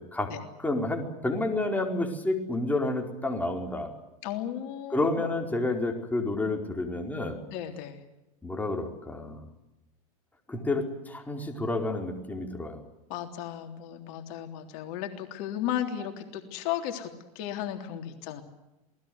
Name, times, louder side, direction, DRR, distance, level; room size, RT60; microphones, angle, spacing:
voice 1, 0.0-0.3 0.6-3.9 4.9-7.4 8.4-9.5 10.5-12.8, left 2 dB, 10° left, 2 dB, 4.8 m, -30 dB
voice 2, 4.2-5.3 7.5-8.0 13.1-18.4, left 11 dB, 60° left, 5 dB, 3.5 m, -35 dB
27.5 x 19.5 x 8.0 m, 0.98 s
hypercardioid pair, 110°, 19 cm